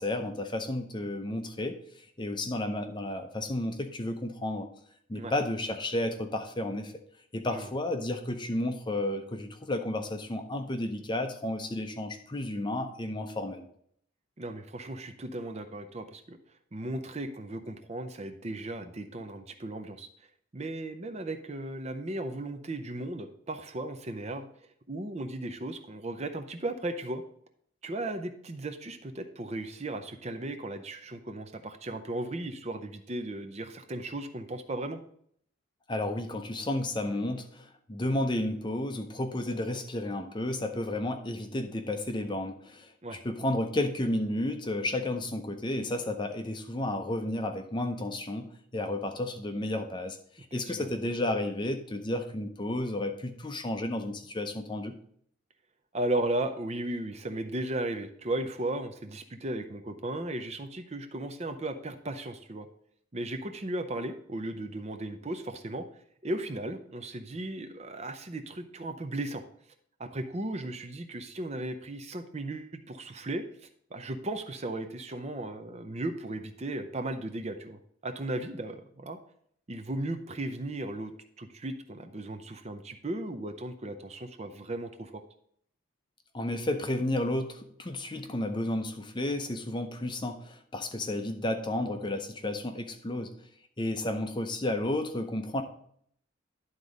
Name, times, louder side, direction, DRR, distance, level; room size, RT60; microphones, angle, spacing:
voice 1, 0.0-4.7 5.1-6.9 7.3-13.7 35.9-42.9 43.2-55.0 86.3-93.3 93.8-95.6, left 1 dB, 20° left, 7 dB, 0.6 m, -32 dB
voice 2, 14.4-27.2 27.8-35.0 43.0-43.2 50.5-50.9 55.9-62.7 63.1-65.8 66.2-69.4 70.0-79.2 79.7-85.2, right 1 dB, 30° right, 8 dB, 0.6 m, -36 dB
11.0 x 4.0 x 4.9 m, 0.65 s
head